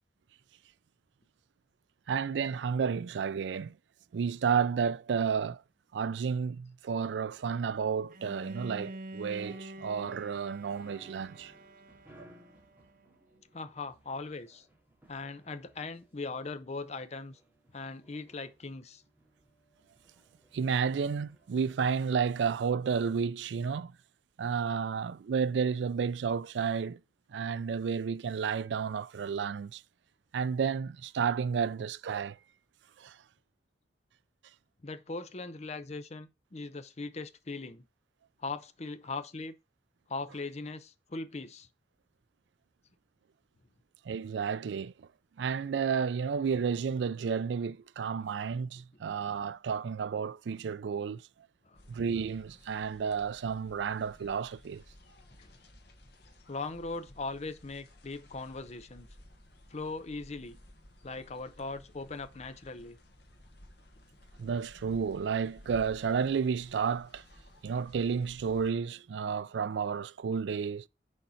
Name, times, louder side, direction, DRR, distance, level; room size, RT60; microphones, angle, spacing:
voice 1, 2.1-3.8 4.1-5.6 5.9-11.5 12.2-12.3 20.5-24.0 24.4-27.0 27.3-29.8 30.3-32.4 33.0-33.2 44.1-45.1 45.4-51.3 51.9-54.8 64.4-67.2 67.6-70.9, right 6 dB, 90° right, 0.4 m, -31 dB
Bowed string instrument, 8.1-13.1, right 1 dB, 50° right, 0.7 m, -46 dB
sound 1, 9.2-22.5, right 1 dB, 10° right, 2.3 m, -61 dB
voice 2, 13.5-14.7 15.1-17.4 17.7-19.0 34.8-37.9 38.4-39.5 40.1-41.7 51.7-51.8 55.4-55.5 56.5-59.1 59.7-60.6 61.0-63.0, left 3 dB, 40° left, 0.7 m, -40 dB
sound 2, 51.7-68.7, left 1 dB, 65° left, 1.8 m, -56 dB
6.5 x 4.3 x 5.5 m
head